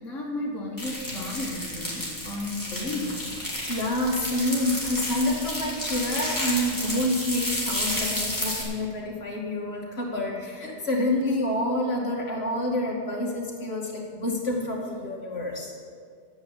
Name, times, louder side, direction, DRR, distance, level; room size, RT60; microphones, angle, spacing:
voice 1, 0.0-3.2, left 2 dB, 65° left, -6 dB, 2.1 m, -33 dB
sound 1, 0.8-8.6, left 1 dB, 15° left, 3.1 m, -31 dB
voice 2, 3.6-15.7, left 1 dB, 50° left, -2 dB, 2.7 m, -28 dB
11.0 x 8.3 x 9.8 m, 2.1 s
omnidirectional pair, 1.4 m